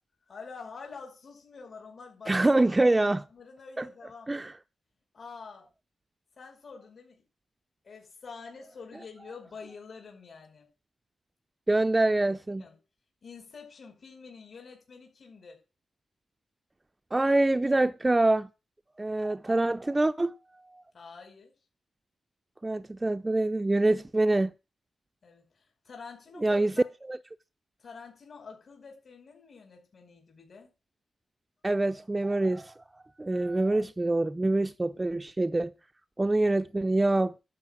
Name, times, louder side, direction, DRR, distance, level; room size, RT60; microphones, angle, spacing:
voice 1, 0.3-2.4 2.8-4.3 5.1-5.7 6.4-7.2 7.8-10.7 12.6-12.8 13.2-15.6 20.9-21.5 25.2-26.8 27.8-30.7 33.3-33.5, left 5 dB, 55° left, 5.2 m, -47 dB
voice 2, 2.3-3.2 3.8-3.9 4.3-4.5 11.7-12.6 17.1-18.5 19.0-20.3 22.6-24.5 26.4-26.7 27.1-27.2 31.6-32.7 33.2-35.7 36.2-37.4, right 2 dB, 20° right, 0.5 m, -25 dB
12.0 x 5.4 x 8.9 m
cardioid pair, 90°, 0 cm